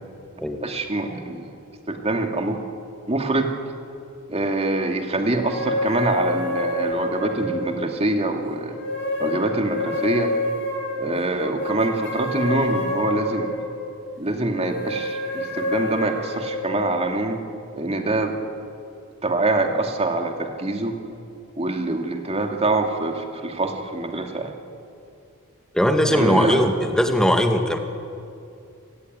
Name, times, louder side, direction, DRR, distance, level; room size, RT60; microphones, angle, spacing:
voice 1, 0.6-1.5 1.9-2.6 3.1-3.5 4.3-8.8 9.2-10.3 11.0-13.5 14.2-17.4 17.8-18.3 19.2-21.0 21.6-24.5 26.1-26.6, right 2 dB, 30° right, 3 dB, 2.4 m, -24 dB
sound 1, 5.4-8.2 8.7-13.9 14.5-17.0, left 1 dB, 55° left, 7.0 m, -28 dB
voice 2, 25.7-27.8, equal, 5° left, 4 dB, 2.0 m, -19 dB
27.5 x 19.0 x 9.6 m, 2.5 s
head